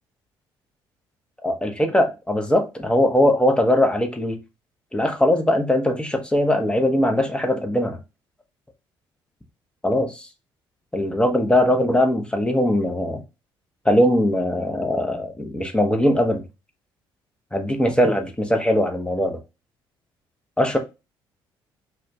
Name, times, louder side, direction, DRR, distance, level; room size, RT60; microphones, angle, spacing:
voice 1, 1.4-4.4 4.9-8.0 9.8-10.3 10.9-13.2 13.8-16.4 17.5-19.4 20.6-20.8, left 1 dB, 10° left, 0.7 m, -20 dB
2.4 x 2.2 x 3.0 m
hypercardioid pair, 55°, 11 cm